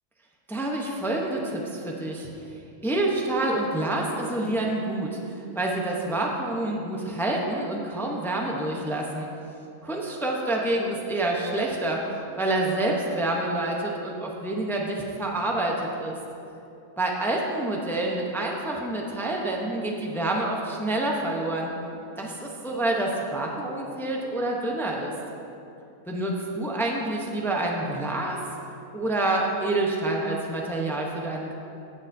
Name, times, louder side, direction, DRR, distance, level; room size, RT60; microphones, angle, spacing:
voice 1, 0.5-2.3 2.8-9.3 9.8-12.0 12.4-16.2 17.0-21.7 22.2-25.1 26.1-28.4 28.9-31.5, right 2 dB, 5° left, -1 dB, 0.4 m, -27 dB
16.5 x 6.7 x 2.7 m, 2.8 s
omnidirectional pair, 1.6 m